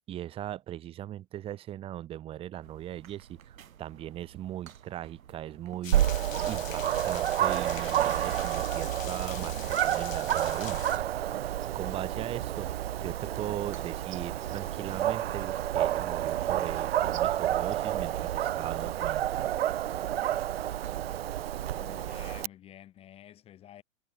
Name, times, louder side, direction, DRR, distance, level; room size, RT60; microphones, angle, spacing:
voice 1, 0.1-10.8 11.7-19.3, right 12 dB, 15° right, 2.9 m, -39 dB
sound 1, 2.6-22.0, right 9 dB, 80° right, 4.6 m, -54 dB
sound 2, 5.8-11.0, left 10 dB, 70° left, 3.2 m, -44 dB
Dog, 5.9-22.5, right 12 dB, 50° right, 0.6 m, -30 dB
voice 2, 21.7-23.8, left 11 dB, 15° left, 7.7 m, -50 dB
hypercardioid pair, 180°, 40 cm